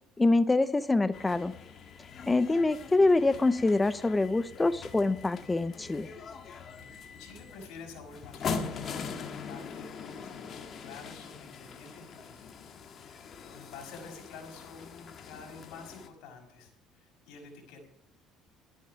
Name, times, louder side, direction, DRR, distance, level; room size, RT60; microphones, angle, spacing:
voice 1, 0.2-1.5 2.3-6.1, left 2 dB, 15° left, 15 dB, 0.6 m, -25 dB
sound 1, 1.1-16.1, left 5 dB, 45° left, 1.7 m, -42 dB
voice 2, 6.8-12.6 12.8-13.1 13.4-17.9, left 4 dB, 75° left, 1 dB, 5.7 m, -49 dB
13.5 x 10.0 x 5.7 m, 0.67 s
supercardioid pair, 100°, 0 cm